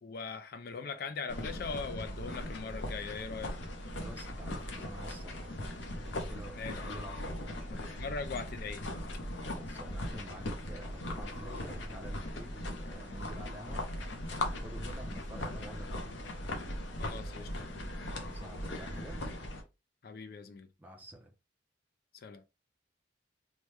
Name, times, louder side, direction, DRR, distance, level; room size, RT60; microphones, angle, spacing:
voice 1, 0.0-3.6 6.5-6.8 7.7-8.9 17.0-17.9 20.0-20.7 22.1-22.4, left 4 dB, 55° left, 0.4 m, -41 dB
sound 1, 1.3-19.6, left 1 dB, 85° left, 0.8 m, -39 dB
voice 2, 3.9-5.6 6.2-7.7 9.3-13.9 14.2-16.1 18.1-19.2 20.8-21.3, right 1 dB, 10° right, 0.5 m, -49 dB
3.0 x 2.1 x 3.3 m
head